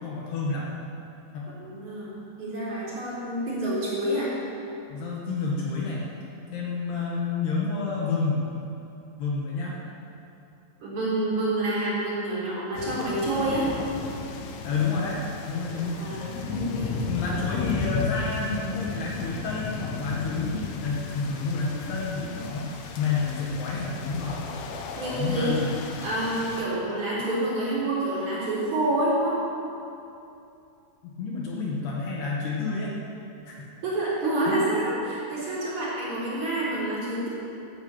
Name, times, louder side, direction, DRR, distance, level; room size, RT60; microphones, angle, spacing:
voice 1, 0.0-0.8 1.3-1.5 4.9-6.1 6.5-8.5 9.2-9.8 14.6-16.4 17.1-24.4 25.0-25.7 31.0-33.0 33.5-33.6 34.5-34.8, left 4 dB, 65° left, -4 dB, 3.4 m, -29 dB
voice 2, 1.6-4.3 10.8-13.7 15.8-16.9 25.0-25.6 26.0-29.4 33.8-37.3, right 1 dB, 40° right, -8 dB, 5.2 m, -28 dB
sound 1, 12.8-26.7, left 5 dB, 85° left, 3.7 m, -34 dB
13.5 x 9.4 x 8.8 m, 2.7 s
omnidirectional pair, 5.6 m